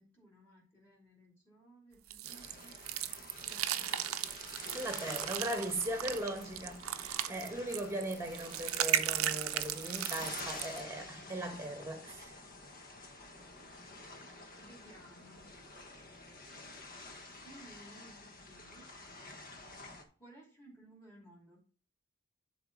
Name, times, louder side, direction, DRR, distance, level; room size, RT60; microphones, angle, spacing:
voice 1, 0.0-2.8 3.4-4.1 14.6-15.5 17.4-18.9 20.2-21.6, right 1 dB, 10° left, 2.7 m, -58 dB
sound 1, 2.1-10.8, right 11 dB, 80° right, 0.6 m, -36 dB
sound 2, 2.2-20.0, left 2 dB, 45° left, 1.3 m, -49 dB
voice 2, 4.7-12.4, right 1 dB, 15° right, 1.3 m, -39 dB
10.5 x 3.9 x 3.9 m
head